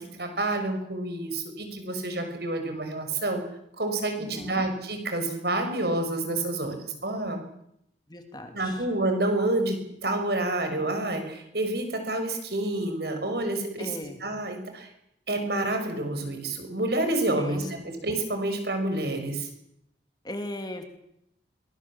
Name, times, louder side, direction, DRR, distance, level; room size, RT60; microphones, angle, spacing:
voice 1, 0.0-3.4 3.8-7.4 8.5-14.9 15.3-19.5, right 2 dB, 65° right, 5 dB, 5.7 m, -29 dB
voice 2, 4.2-4.6 8.1-8.9 13.8-14.2 17.4-17.7 20.2-20.8, left 1 dB, 25° left, 6 dB, 2.5 m, -37 dB
23.5 x 20.0 x 7.3 m, 0.78 s
head